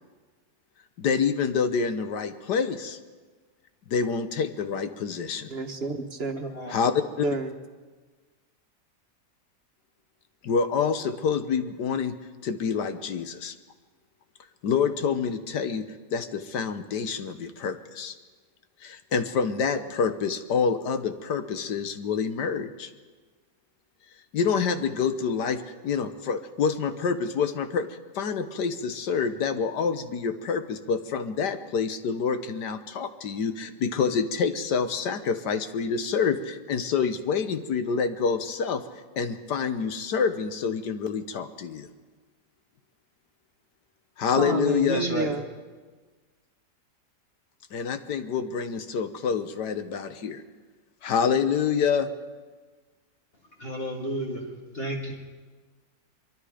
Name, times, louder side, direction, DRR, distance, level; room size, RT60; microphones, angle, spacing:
voice 1, 1.0-3.0 3.9-5.5 6.7-7.3 10.4-12.1 12.4-13.5 14.6-15.8 16.1-18.2 18.8-22.9 24.3-27.9 28.2-38.8 39.2-41.9 44.2-45.0 47.7-50.4 51.0-52.1, left 6 dB, 90° left, 9 dB, 1.7 m, -27 dB
voice 2, 5.5-6.5 7.2-7.5 44.3-45.5, right 3 dB, 40° right, 6 dB, 1.4 m, -29 dB
voice 3, 6.4-6.7 44.9-45.3 53.6-54.4 54.8-55.1, right 1 dB, 35° left, 0 dB, 2.1 m, -31 dB
23.5 x 23.5 x 5.1 m, 1.4 s
omnidirectional pair, 1.7 m